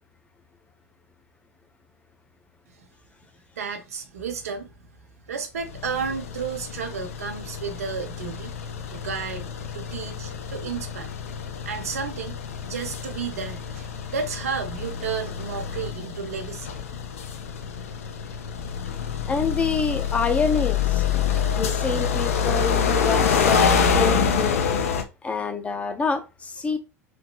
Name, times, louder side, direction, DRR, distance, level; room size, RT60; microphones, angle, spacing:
voice 1, 3.6-4.7 5.3-8.5 8.9-11.2 11.7-16.7, right 6 dB, 70° right, 0.6 m, -32 dB
sound 1, 5.6-25.0, left 6 dB, 70° left, 0.4 m, -27 dB
voice 2, 19.3-21.0 21.5-24.6 25.2-26.8, left 4 dB, 15° left, 0.5 m, -27 dB
3.0 x 2.8 x 2.2 m
figure-of-eight pair, 75°, 8 cm